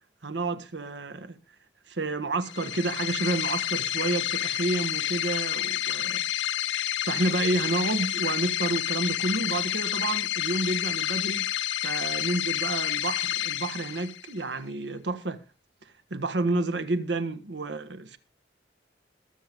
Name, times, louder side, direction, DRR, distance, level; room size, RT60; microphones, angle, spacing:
voice 1, 0.2-1.4 1.9-6.2 7.0-11.5 11.8-15.4 16.1-18.2, right 2 dB, 80° right, 1.4 m, -30 dB
sound 1, 2.4-14.4, left 12 dB, 85° left, 0.6 m, -29 dB
21.0 x 7.7 x 3.5 m
head